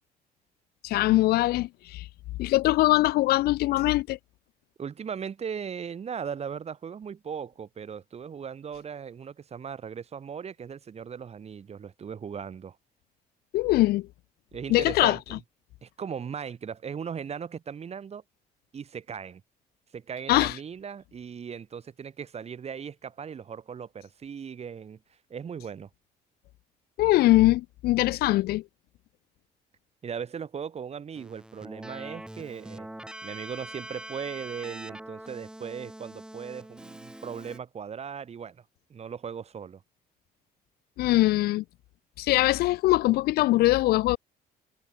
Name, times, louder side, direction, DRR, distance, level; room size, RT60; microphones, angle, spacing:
voice 1, 0.8-2.1 2.4-4.2 13.5-14.1 14.7-15.2 20.3-20.6 27.0-28.6 41.0-41.6 42.2-44.2, left 17 dB, 70° left, 0.4 m, -22 dB
voice 2, 4.8-12.8 14.5-15.4 15.8-18.2 18.7-19.4 19.9-25.0 25.3-25.9 30.0-32.9 33.2-38.6 38.9-39.8, right 7 dB, 40° right, 3.2 m, -38 dB
Keyboard (musical), 31.2-37.6, right 1 dB, 5° right, 1.2 m, -43 dB
cardioid pair, 110°, 17 cm